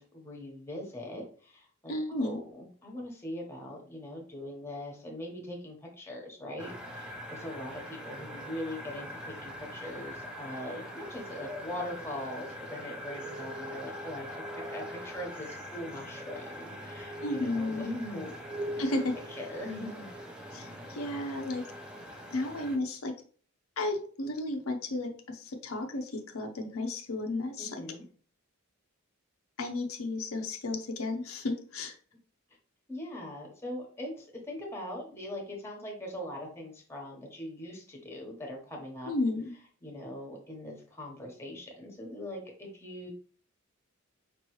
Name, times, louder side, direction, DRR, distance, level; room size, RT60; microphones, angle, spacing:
voice 1, 0.0-18.3 19.3-20.1 27.6-28.0 32.9-39.1 39.8-43.1, left 1 dB, 10° left, 0 dB, 1.1 m, -41 dB
voice 2, 1.9-2.4 17.2-17.9 18.8-19.1 20.5-21.6 22.3-23.1 23.8-27.8 29.6-31.9 39.1-39.5, left 2 dB, 80° left, 3 dB, 0.7 m, -33 dB
sound 1, 6.6-22.8, equal, 5° right, 0.6 m, -42 dB
5.1 x 3.0 x 3.1 m, 0.43 s
head